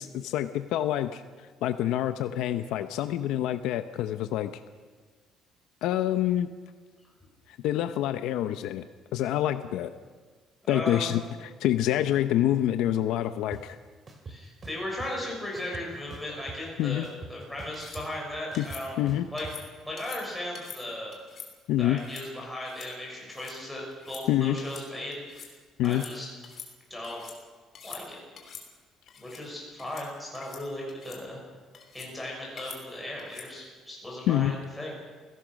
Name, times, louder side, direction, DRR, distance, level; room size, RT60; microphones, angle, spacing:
voice 1, 0.0-4.5 5.8-6.5 7.5-8.8 9.1-9.9 10.7-13.8 16.8-17.1 18.6-18.7 19.0-19.3 21.7-22.0 24.3-24.6 25.8-26.0 34.3-34.6, left 12 dB, 80° left, 9 dB, 0.8 m, -27 dB
voice 2, 10.6-11.1 14.3-18.9 19.3-19.4 19.8-21.2 21.8-25.5 25.8-26.3 26.9-27.2 27.8-28.2 29.2-31.4 31.9-34.9, left 1 dB, 5° left, -3 dB, 6.5 m, -37 dB
sound 1, 13.5-13.6 14.1-15.1 15.5-16.7 17.0-19.5, right 3 dB, 25° right, 2.8 m, -43 dB
sound 2, 17.7-18.0 18.5-18.8 19.4-19.6 20.0-20.2 20.5-20.8 21.1-21.5 22.0-22.2 22.6-22.9 23.2-23.5 23.9-24.2 24.6-24.9 25.1-25.5 25.8-26.1 26.4-27.4 27.7-28.0 28.4-28.6 29.1-29.4 29.8-30.1 30.3-30.6 30.9-31.2 31.7-32.1 32.6-32.8 33.2-33.5, left 7 dB, 35° left, 3.3 m, -45 dB
28.0 x 17.0 x 6.4 m, 1.5 s
cardioid pair, 175°, 0 cm